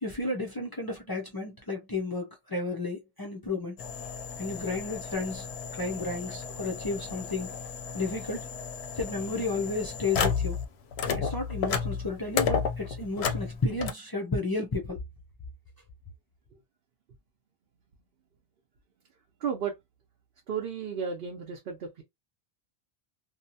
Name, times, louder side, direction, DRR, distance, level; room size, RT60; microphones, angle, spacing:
voice 1, 0.0-3.8 4.4-5.5 5.7-7.5 7.9-8.5 9.0-10.6 11.1-15.0, left 3 dB, 35° left, 0.3 m, -32 dB
sound 1, 3.8-10.7 10.9-13.9, left 6 dB, 85° left, 0.8 m, -33 dB
voice 2, 19.4-19.7 20.5-22.0, right 6 dB, 65° right, 0.8 m, -33 dB
2.7 x 2.1 x 2.7 m
omnidirectional pair, 1.1 m